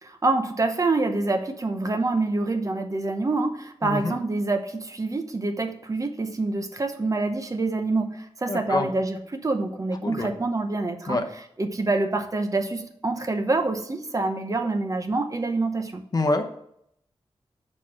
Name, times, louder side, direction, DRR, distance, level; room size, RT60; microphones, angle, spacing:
voice 1, 0.0-11.2 11.6-16.0, right 3 dB, 35° right, 6 dB, 0.8 m, -26 dB
voice 2, 3.8-4.2 8.5-8.9 10.0-10.3 11.1-11.2 16.1-16.4, left 2 dB, 40° left, 5 dB, 0.8 m, -25 dB
6.4 x 4.4 x 6.2 m, 0.73 s
wide cardioid pair, 120°, 10 cm